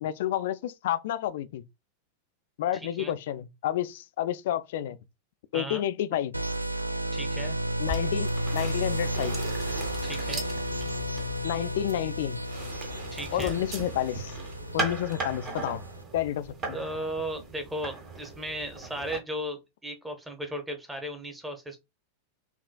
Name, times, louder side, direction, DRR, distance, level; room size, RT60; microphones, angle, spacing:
voice 1, 0.0-1.6 2.6-5.0 5.5-6.3 7.8-9.4 11.4-12.4 13.3-14.3 14.7-15.8 16.1-16.8, left 12 dB, 55° left, 0.3 m, -30 dB
sound 1, 6.3-16.0, right 1 dB, 85° right, 0.3 m, -32 dB
voice 2, 7.1-7.6 10.0-10.4 13.1-13.6 16.7-21.8, right 1 dB, 10° right, 0.9 m, -36 dB
sound 2, 7.9-19.2, right 3 dB, 30° right, 1.1 m, -38 dB
5.9 x 2.4 x 2.2 m
figure-of-eight pair, 90°, 0 cm